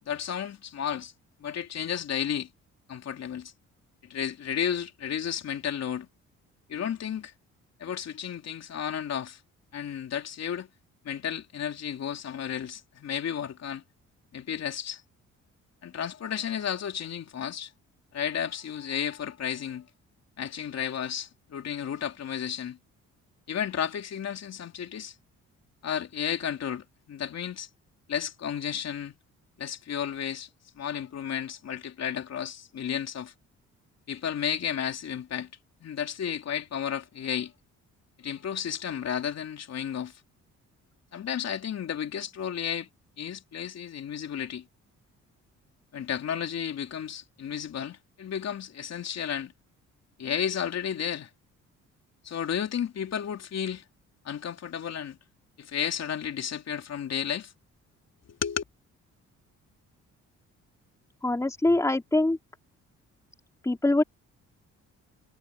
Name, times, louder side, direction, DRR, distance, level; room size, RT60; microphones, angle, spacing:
voice 1, 0.0-1.1 1.4-2.5 2.9-3.5 4.0-6.1 6.7-7.3 7.8-9.4 9.7-10.7 11.0-13.8 14.3-15.0 15.8-17.7 18.1-19.9 20.4-22.8 23.5-25.1 25.8-27.7 28.1-29.2 29.6-30.5 30.7-33.3 34.1-35.5 35.8-37.5 38.2-40.2 41.1-42.9 43.2-44.6 45.9-49.5 50.2-51.3 52.2-53.8 54.2-55.2 55.6-57.5 58.3-58.6, left 8 dB, 60° left, 3.4 m, -33 dB
voice 2, 61.2-62.4 63.6-64.0, left 2 dB, 10° left, 2.4 m, -23 dB
cardioid pair, 90°, 30 cm